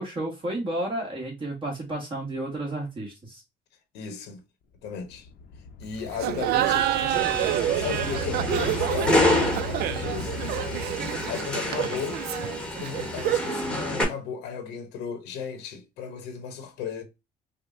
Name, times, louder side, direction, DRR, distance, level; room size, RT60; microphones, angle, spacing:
voice 1, 0.0-3.4, right 1 dB, 30° right, 1.4 m, -32 dB
voice 2, 3.9-4.4 4.8-5.3 5.8-7.2 7.7-10.7 11.3-12.2 12.7-17.0, left 6 dB, 90° left, 0.9 m, -35 dB
sound 1, 5.0-11.8, left 2 dB, 65° left, 0.7 m, -37 dB
Laughter, 6.1-13.6, right 12 dB, 70° right, 0.4 m, -28 dB
sound 2, 7.1-14.0, left 2 dB, 5° left, 1.1 m, -29 dB
5.2 x 2.1 x 2.5 m
cardioid pair, 110°, 17 cm